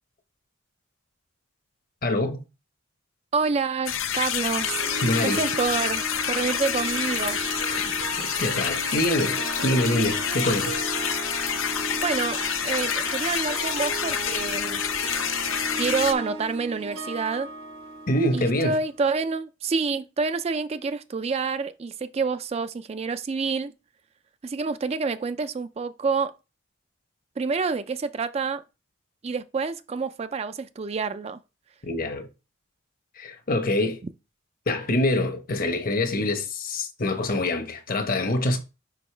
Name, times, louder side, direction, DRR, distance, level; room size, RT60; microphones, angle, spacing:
voice 1, 2.0-2.4 5.0-5.4 7.7-7.9 8.2-10.8 18.1-18.8 31.8-32.3 33.2-34.0 34.7-38.6, left 1 dB, 45° left, 0.9 m, -25 dB
voice 2, 3.3-4.8 5.2-7.4 12.0-12.4 12.6-14.8 15.8-17.5 18.3-23.7 24.4-26.3 27.4-28.6 29.2-31.4, right 4 dB, 30° right, 0.3 m, -28 dB
sound 1, 3.9-16.1, left 9 dB, 75° left, 0.6 m, -28 dB
Harp, 4.5-18.9, right 4 dB, 85° right, 1.1 m, -35 dB
6.3 x 5.2 x 3.3 m
head